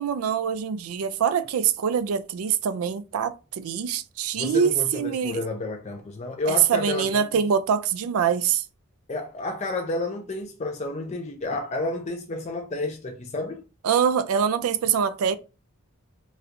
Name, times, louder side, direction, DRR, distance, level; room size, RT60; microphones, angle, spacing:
voice 1, 0.0-5.4 6.5-8.6 13.8-15.3, right 7 dB, 90° right, 0.4 m, -24 dB
voice 2, 4.4-7.2 9.1-13.6, left 2 dB, 30° left, 0.4 m, -30 dB
4.1 x 2.3 x 2.5 m
head